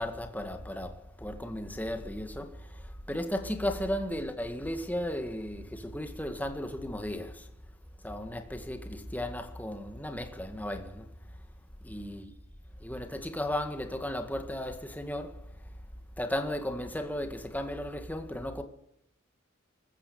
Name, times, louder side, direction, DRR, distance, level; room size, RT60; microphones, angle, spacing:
voice 1, 0.0-7.5 8.0-11.1 11.9-12.3 12.8-15.3 16.2-18.6, left 1 dB, 10° left, 1.9 m, -35 dB
20.5 x 15.0 x 8.7 m
head